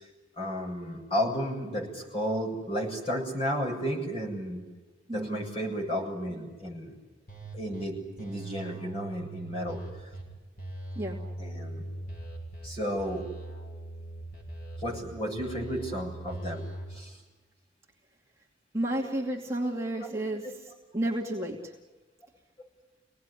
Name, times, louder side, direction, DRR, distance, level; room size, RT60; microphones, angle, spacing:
voice 1, 0.4-4.6 5.1-7.0 7.5-9.8 11.4-11.8 12.6-13.2 14.8-16.6 16.9-17.2 19.9-20.2, equal, 30° left, -1 dB, 7.6 m, -33 dB
voice 2, 5.1-5.4 11.0-11.2 18.7-21.7, right 1 dB, 15° right, -2 dB, 2.5 m, -32 dB
sound 1, 7.3-7.8 8.2-10.2 10.6-12.7 13.0-15.0 15.4-16.8, right 1 dB, 50° left, 7.2 m, -41 dB
26.5 x 19.0 x 10.0 m, 1.2 s
head